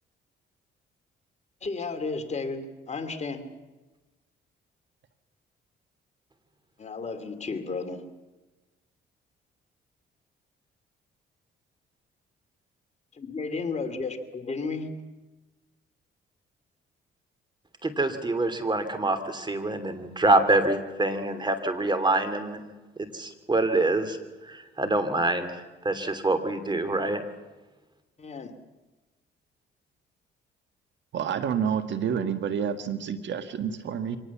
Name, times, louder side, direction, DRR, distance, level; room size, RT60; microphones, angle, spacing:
voice 1, 1.6-3.5 6.8-8.1 13.2-15.0 28.2-28.5, left 4 dB, 35° left, 6 dB, 2.7 m, -33 dB
voice 2, 17.8-22.7 23.1-24.2 24.5-25.5 25.8-27.2, right 2 dB, 20° right, 10 dB, 2.8 m, -25 dB
voice 3, 31.1-34.2, right 7 dB, 65° right, 9 dB, 1.6 m, -29 dB
25.0 x 19.0 x 7.3 m, 1.2 s
cardioid pair, 90°, 20 cm